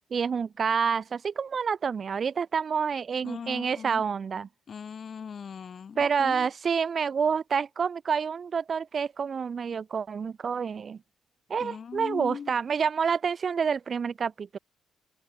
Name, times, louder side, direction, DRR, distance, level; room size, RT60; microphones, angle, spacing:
voice 1, 0.1-4.5 6.0-11.0 11.5-14.6, right 6 dB, 45° right, 1.8 m, -28 dB
voice 2, 3.2-4.1 4.7-6.5 11.6-12.5, left 6 dB, 50° left, 1.0 m, -39 dB
cardioid pair, 90°, 0 cm